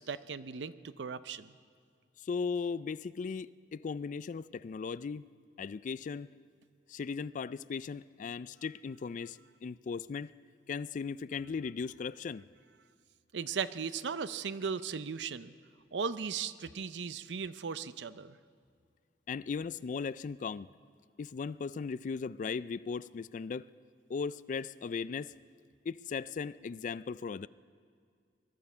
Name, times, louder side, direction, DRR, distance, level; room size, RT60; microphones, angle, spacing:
voice 1, 0.0-1.5 13.3-15.5 15.9-18.4, right 6 dB, 85° right, 14 dB, 0.6 m, -37 dB
voice 2, 2.2-5.3 5.6-6.3 6.9-10.3 10.7-12.4 19.3-20.7 21.2-23.7 24.1-25.3 25.9-27.5, left 5 dB, 45° left, 17 dB, 0.3 m, -37 dB
21.0 x 12.0 x 5.6 m, 2.2 s
head